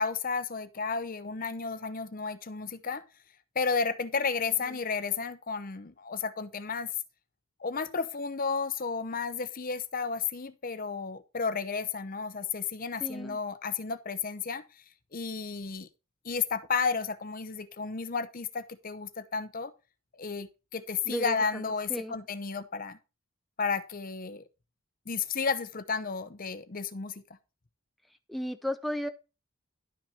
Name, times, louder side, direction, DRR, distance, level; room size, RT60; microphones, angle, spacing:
voice 1, 0.0-3.0 3.5-6.9 7.6-14.6 15.1-15.9 16.2-19.7 20.2-23.0 23.6-24.4 25.1-27.2, left 5 dB, 40° left, 0.8 m, -32 dB
voice 2, 13.0-13.4 21.1-21.3 21.9-22.2 28.3-29.1, equal, ahead, 0.6 m, -33 dB
11.5 x 6.3 x 4.4 m
head